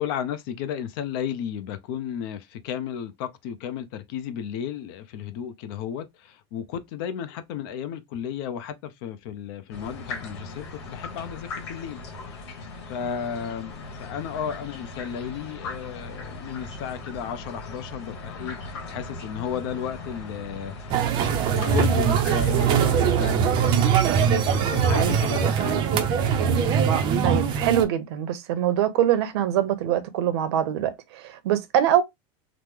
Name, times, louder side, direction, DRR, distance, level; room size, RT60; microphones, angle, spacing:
voice 1, 0.0-12.4 12.9-13.7 14.0-23.7 24.2-26.1, left 8 dB, 55° left, 0.6 m, -33 dB
sound 1, 9.7-23.2, left 3 dB, 85° left, 1.1 m, -39 dB
sound 2, 20.9-27.8, right 7 dB, 35° right, 0.4 m, -22 dB
voice 2, 27.2-32.0, right 10 dB, 75° right, 0.7 m, -23 dB
3.0 x 2.0 x 3.5 m
supercardioid pair, 160°, 14 cm